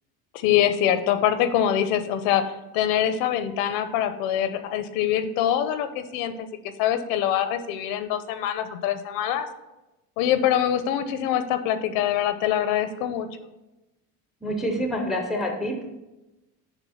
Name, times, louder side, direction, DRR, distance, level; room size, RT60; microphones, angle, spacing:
voice 1, 0.3-6.3 6.8-9.5 10.2-13.3, left 10 dB, 85° left, 11 dB, 0.7 m, -24 dB
voice 2, 14.4-15.8, equal, ahead, 3 dB, 0.4 m, -27 dB
6.2 x 3.3 x 5.5 m, 1.0 s
cardioid pair, 165°, 38 cm